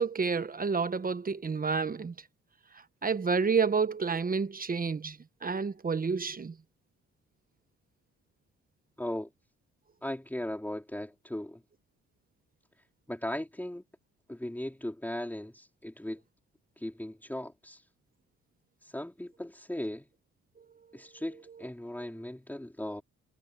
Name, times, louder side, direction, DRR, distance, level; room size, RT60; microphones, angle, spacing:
voice 1, 0.0-2.1 3.0-5.2 5.4-6.5, right 5 dB, 30° right, 1.1 m, -29 dB
voice 2, 9.0-9.3 10.0-11.6 13.1-13.8 14.3-16.2 16.8-17.8 18.8-20.1 20.9-23.0, left 1 dB, 5° left, 4.1 m, -37 dB
cardioid pair, 90°, 30 cm